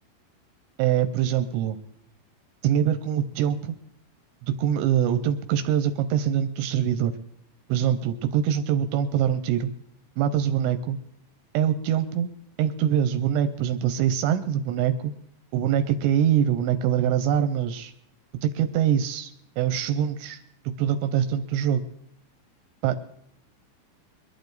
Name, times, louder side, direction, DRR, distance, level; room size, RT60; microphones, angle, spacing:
voice 1, 0.8-1.8 2.6-3.7 4.4-7.1 7.7-9.7 10.2-11.0 11.5-12.3 12.6-15.1 15.5-17.9 18.4-20.4 20.8-21.8 22.8-23.0, right 9 dB, 80° right, 10 dB, 2.8 m, -24 dB
22.0 x 11.5 x 4.0 m, 0.75 s
omnidirectional pair, 5.3 m